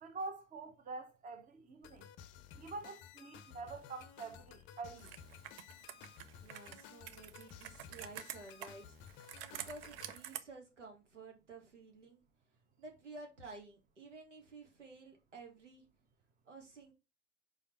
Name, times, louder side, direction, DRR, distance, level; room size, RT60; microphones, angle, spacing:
voice 1, 0.0-2.1 2.6-5.1, right 3 dB, 20° right, 1.1 m, -46 dB
sound 1, 1.8-10.2, left 9 dB, 35° left, 0.6 m, -55 dB
Computer keyboard, 5.0-10.4, right 11 dB, 50° right, 0.7 m, -49 dB
voice 2, 6.4-9.0 9.5-12.2 12.8-15.8 16.5-16.9, right 3 dB, 80° right, 1.9 m, -53 dB
5.2 x 4.9 x 4.4 m
figure-of-eight pair, 80°, 36 cm